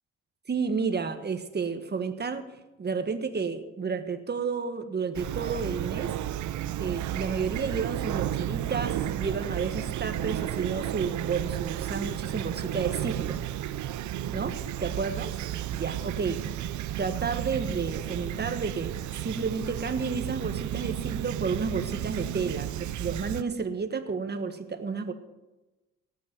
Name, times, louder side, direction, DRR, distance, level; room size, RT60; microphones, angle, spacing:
voice 1, 0.5-2.5 2.8-6.1 6.8-13.4 14.3-14.5 14.8-15.3 15.7-16.4 17.0-18.9 19.2-25.1, right 5 dB, 35° right, 9 dB, 1.4 m, -31 dB
Fowl / Chirp tweet, 5.1-23.4, right 12 dB, 75° right, 0.7 m, -33 dB
18.5 x 8.5 x 6.0 m, 1.1 s
cardioid pair, 90°, 30 cm